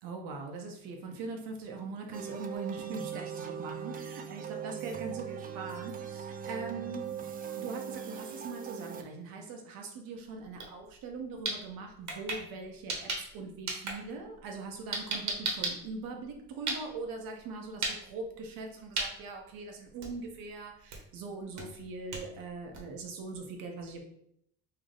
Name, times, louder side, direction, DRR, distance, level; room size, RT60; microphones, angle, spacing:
voice 1, 0.0-7.0 7.6-24.0, right 3 dB, 85° right, 3 dB, 0.9 m, -41 dB
sound 1, 2.1-9.0, right 7 dB, 25° right, 0.4 m, -40 dB
sound 2, 10.4-10.7 11.0-13.4 13.7-17.1 17.7-18.0 18.3-18.6 18.9-19.1 19.6-19.7 20.0-20.4 20.9-21.1 21.6-23.0, right 3 dB, 55° right, 1.1 m, -35 dB
3.3 x 2.7 x 3.8 m, 0.71 s
cardioid pair, 90°, 33 cm